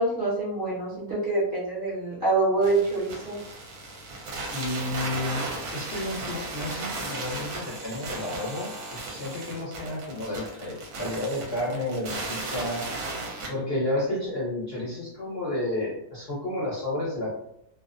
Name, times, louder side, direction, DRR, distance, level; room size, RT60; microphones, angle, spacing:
voice 1, 0.0-3.4, right 2 dB, 40° right, -8 dB, 0.9 m, -26 dB
sound 1, 2.6-13.5, right 2 dB, 75° right, 1.1 m, -36 dB
voice 2, 4.5-5.4 5.7-13.0 13.5-17.3, left 1 dB, 50° left, -7 dB, 0.8 m, -31 dB
2.6 x 2.0 x 2.4 m, 0.76 s
omnidirectional pair, 1.6 m